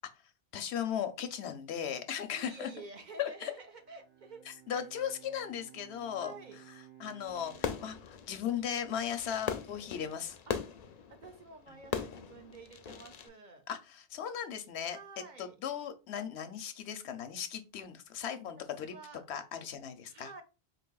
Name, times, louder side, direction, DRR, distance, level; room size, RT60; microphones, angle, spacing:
voice 1, 0.5-2.7 3.2-3.5 4.5-6.3 7.0-10.4 13.7-15.0 15.4-19.0 19.3-20.4, left 8 dB, 85° left, 9 dB, 0.9 m, -37 dB
voice 2, 2.4-4.5 4.7-4.8 6.2-6.6 10.5-13.7 14.8-15.6 18.6-19.2 20.1-20.4, right 3 dB, 50° right, 6 dB, 0.7 m, -50 dB
Bowed string instrument, 3.6-9.1, right 13 dB, 15° right, 0.5 m, -57 dB
Fireworks, 7.3-13.3, left 7 dB, 55° left, 0.5 m, -40 dB
4.2 x 3.3 x 2.3 m, 0.29 s
omnidirectional pair, 1.1 m